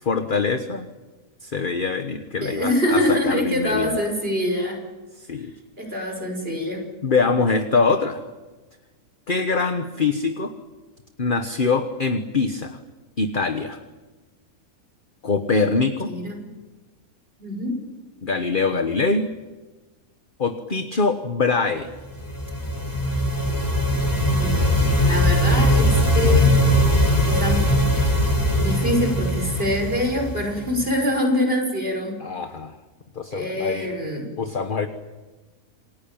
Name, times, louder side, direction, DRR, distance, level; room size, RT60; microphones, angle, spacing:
voice 1, 0.0-0.9 1.4-4.0 5.2-5.5 7.0-8.2 9.3-10.5 11.2-12.8 13.2-13.8 15.2-16.1 18.2-19.3 20.4-21.9 32.2-32.8 33.1-33.9 34.4-34.9, left 4 dB, 35° left, 7 dB, 1.4 m, -23 dB
voice 2, 2.4-4.8 5.8-6.9 16.1-16.5 17.4-17.8 24.3-26.5 27.2-27.7 28.6-32.2 33.3-34.3, left 1 dB, 40° right, 3 dB, 5.9 m, -25 dB
sound 1, 22.1-30.8, equal, 10° left, 3.9 m, -20 dB
28.0 x 20.5 x 8.9 m, 1.2 s
omnidirectional pair, 1.6 m